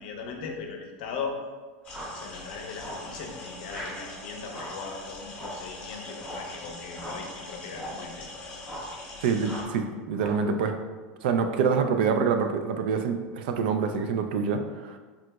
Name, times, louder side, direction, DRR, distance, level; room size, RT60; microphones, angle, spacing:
voice 1, 0.0-1.4 2.1-8.4, left 5 dB, 70° left, 2 dB, 0.5 m, -39 dB
sound 1, 1.8-9.6, left 2 dB, 25° left, 0.7 m, -42 dB
sound 2, 1.9-2.2 2.8-3.1 3.7-4.0 4.5-4.8 5.3-5.7 6.2-6.5 6.9-7.3 7.7-8.1 8.6-9.0 9.4-9.8 10.1-10.5, equal, 10° right, 0.5 m, -40 dB
voice 2, 9.2-10.8 11.2-15.0, right 5 dB, 75° right, 7 dB, 0.3 m, -26 dB
3.6 x 2.8 x 2.3 m, 1.4 s
supercardioid pair, 155°, 5 cm